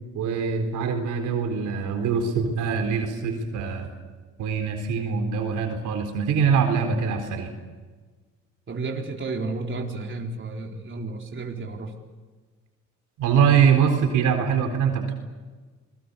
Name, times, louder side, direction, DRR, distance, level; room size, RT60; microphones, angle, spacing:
voice 1, 0.1-3.9 4.4-7.5 13.2-15.1, right 6 dB, 85° right, 5 dB, 4.1 m, -23 dB
voice 2, 8.7-11.9, right 3 dB, 40° right, 1 dB, 4.1 m, -32 dB
28.0 x 22.0 x 7.0 m, 1.4 s
cardioid pair, 90°, 30 cm